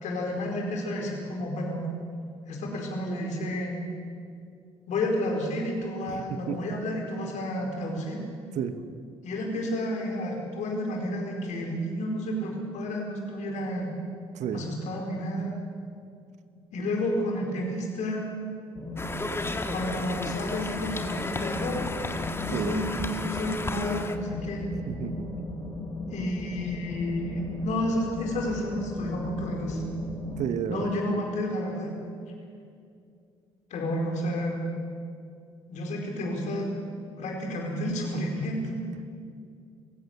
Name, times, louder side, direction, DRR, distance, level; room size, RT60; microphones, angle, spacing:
voice 1, 0.0-1.8 2.5-3.7 4.9-8.2 9.2-13.9 14.5-15.5 16.7-18.3 19.7-21.8 22.4-24.7 26.1-29.8 30.7-31.9 33.7-34.6 35.7-36.7 37.2-38.7, left 1 dB, 60° left, 1 dB, 4.6 m, -31 dB
voice 2, 6.1-6.6 8.5-8.8 14.3-14.7 22.5-22.8 24.8-25.3 30.4-30.9, right 8 dB, 55° right, 10 dB, 1.3 m, -32 dB
sound 1, 18.8-30.5, left 2 dB, 35° left, 5.3 m, -36 dB
Conversation, 19.0-24.2, left 2 dB, 15° left, 1.7 m, -33 dB
29.0 x 16.0 x 6.8 m, 2.4 s
figure-of-eight pair, 50°, 14 cm